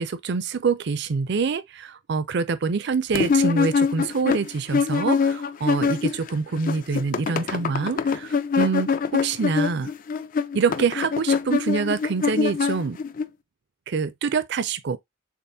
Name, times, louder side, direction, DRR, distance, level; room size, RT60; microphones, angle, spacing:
voice 1, 0.0-9.9 10.5-13.0 13.9-15.0, right 5 dB, 55° right, 0.4 m, -25 dB
sound 1, 3.1-6.3 6.6-13.2, left 5 dB, 40° left, 0.4 m, -24 dB
6.7 x 2.5 x 2.7 m
head